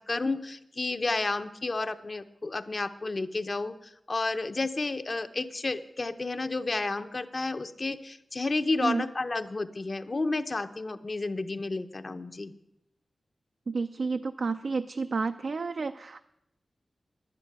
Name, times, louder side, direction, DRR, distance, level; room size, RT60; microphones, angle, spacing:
voice 1, 0.0-3.7 4.1-12.5, left 3 dB, 40° left, 9 dB, 0.7 m, -31 dB
voice 2, 13.7-16.3, right 4 dB, 65° right, 8 dB, 0.4 m, -30 dB
10.5 x 9.7 x 6.6 m, 0.82 s
wide cardioid pair, 110°, 0 cm